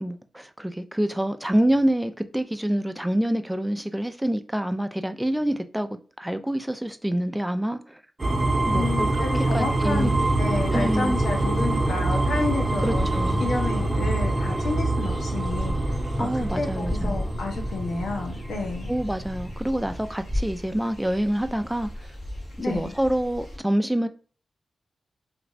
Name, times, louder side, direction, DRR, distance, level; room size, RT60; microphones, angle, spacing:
voice 1, 0.0-8.0 8.7-9.3 9.5-10.2 10.7-11.2 12.8-13.5 16.2-17.2 18.9-22.1 22.6-24.1, right 1 dB, 5° right, 0.3 m, -27 dB
sound 1, 8.2-20.0, right 2 dB, 25° right, 0.8 m, -25 dB
voice 2, 8.7-13.1 13.4-18.9 22.6-22.9, left 3 dB, 90° left, 0.9 m, -30 dB
sound 2, 9.3-23.6, left 1 dB, 45° left, 1.3 m, -36 dB
3.3 x 2.5 x 3.1 m
wide cardioid pair, 90°, 0 cm